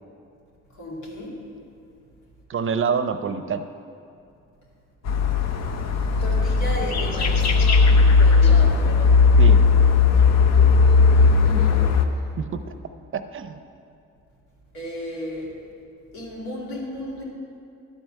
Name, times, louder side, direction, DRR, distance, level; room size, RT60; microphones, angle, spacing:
voice 1, 0.7-1.5 6.2-8.8 11.1-12.0 14.7-15.6 16.1-17.2, left 1 dB, 85° left, -4 dB, 2.5 m, -34 dB
voice 2, 2.5-3.6 9.4-9.6 12.4-12.6 13.1-13.5, right 6 dB, 45° right, 10 dB, 0.6 m, -26 dB
sound 1, 5.1-12.1, left 4 dB, 60° left, 0.8 m, -17 dB
11.5 x 4.8 x 6.5 m, 2.5 s
cardioid pair, 90°, 30 cm